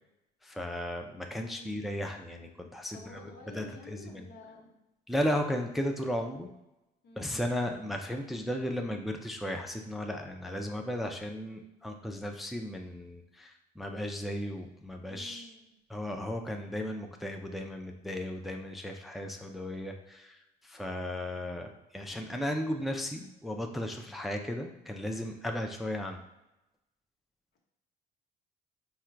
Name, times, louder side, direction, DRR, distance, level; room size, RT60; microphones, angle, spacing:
voice 1, 0.4-4.2 5.1-6.5 7.2-15.5 15.9-26.2, left 1 dB, ahead, 3 dB, 0.4 m, -35 dB
voice 2, 1.4-1.9 2.9-4.8 7.0-7.4 15.0-15.7, left 2 dB, 80° left, 0 dB, 1.1 m, -51 dB
3.7 x 2.2 x 4.4 m, 0.94 s
cardioid pair, 110°, 17 cm